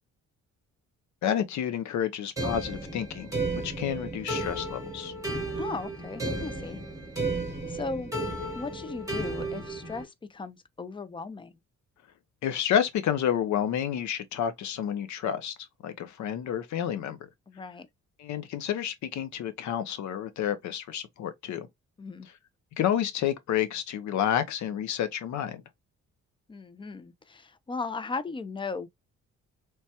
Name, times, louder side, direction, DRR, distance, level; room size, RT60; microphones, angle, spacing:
voice 1, 1.2-5.1 12.4-15.5 15.8-17.2 18.2-21.7 22.8-25.6, left 9 dB, 70° left, 0.6 m, -30 dB
sound 1, 2.4-10.0, right 2 dB, 10° right, 1.0 m, -33 dB
voice 2, 5.6-6.8 7.4-8.1 8.5-11.6 17.5-17.9 22.0-22.3 26.5-28.9, left 4 dB, 15° left, 0.4 m, -37 dB
3.2 x 2.1 x 2.8 m
cardioid pair, 90°, 30 cm